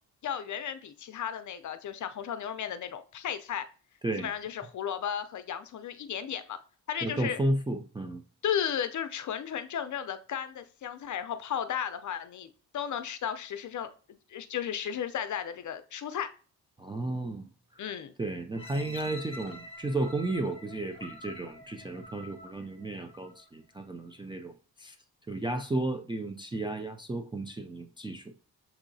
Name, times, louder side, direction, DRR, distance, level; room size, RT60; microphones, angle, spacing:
voice 1, 0.2-3.7 4.2-6.6 6.9-7.4 8.4-12.5 12.7-16.3 17.8-18.1, left 9 dB, 50° left, 0.5 m, -34 dB
voice 2, 7.0-8.2 16.8-17.8 18.2-24.9 25.3-28.3, right 2 dB, 15° right, 0.3 m, -33 dB
sound 1, 18.5-23.5 24.1-24.2, left 1 dB, 15° left, 0.8 m, -47 dB
6.9 x 2.8 x 2.7 m
cardioid pair, 105°, 38 cm